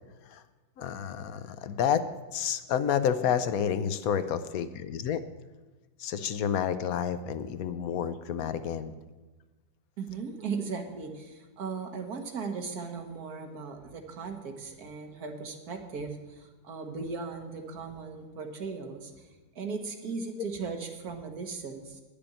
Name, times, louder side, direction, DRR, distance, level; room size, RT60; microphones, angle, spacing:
voice 1, 0.8-2.0 2.3-5.2 6.0-8.9, left 8 dB, 65° left, 12 dB, 1.0 m, -29 dB
voice 2, 10.0-19.3 19.6-22.0, right 4 dB, 70° right, 5 dB, 1.7 m, -37 dB
10.5 x 6.9 x 8.7 m, 1.2 s
omnidirectional pair, 1.7 m